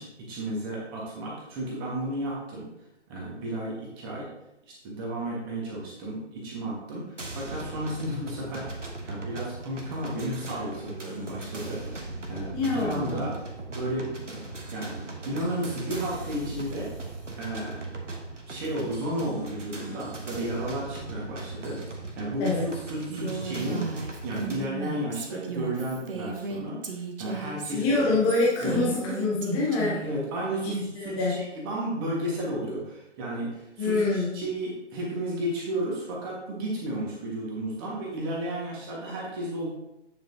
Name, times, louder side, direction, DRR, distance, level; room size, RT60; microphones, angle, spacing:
voice 1, 0.0-2.7 3.1-4.3 4.8-7.1 7.3-8.7 9.0-13.4 13.7-14.2 14.7-16.9 17.4-17.9 18.5-21.8 22.2-23.9 24.2-26.8 27.2-28.1 28.6-28.8 30.0-39.7, right 1 dB, 20° right, -4 dB, 1.7 m, -33 dB
sound 1, 7.2-24.6, right 2 dB, 85° right, 1.4 m, -38 dB
voice 2, 12.5-13.3 22.4-22.6 27.7-30.0 30.6-31.4 33.8-34.3, left 3 dB, 5° left, -6 dB, 0.7 m, -26 dB
Female speech woman speaking, 23.1-30.1, right 5 dB, 50° right, 1.1 m, -35 dB
9.0 x 5.0 x 2.8 m, 0.89 s
figure-of-eight pair, 145°, 36 cm